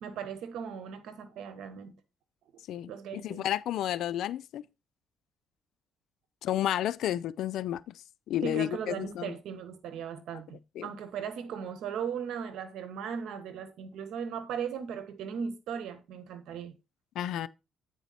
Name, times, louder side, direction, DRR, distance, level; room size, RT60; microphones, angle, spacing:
voice 1, 0.0-1.9 2.9-3.5 8.4-16.7, right 7 dB, 80° right, 1.2 m, -38 dB
voice 2, 2.7-4.6 6.4-7.9 8.3-9.3 10.8-10.9 17.2-17.5, left 12 dB, 80° left, 0.4 m, -31 dB
9.0 x 4.6 x 4.1 m
cardioid pair, 90°, 0 cm